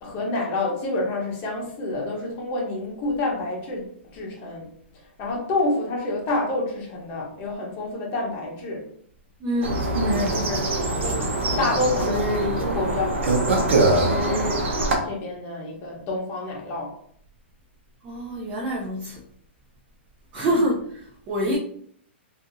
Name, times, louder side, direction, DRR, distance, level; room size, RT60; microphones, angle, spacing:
voice 1, 0.0-4.7 5.2-8.9 10.3-14.5 15.0-16.9 20.4-20.5, left 2 dB, 30° left, -1 dB, 0.9 m, -28 dB
voice 2, 9.4-9.8 18.0-19.2 20.3-21.6, equal, 25° right, -2 dB, 0.4 m, -26 dB
sound 1, 9.6-15.0, right 2 dB, 75° right, 0.8 m, -23 dB
2.7 x 2.5 x 2.5 m, 0.63 s
hypercardioid pair, 155°, 7 cm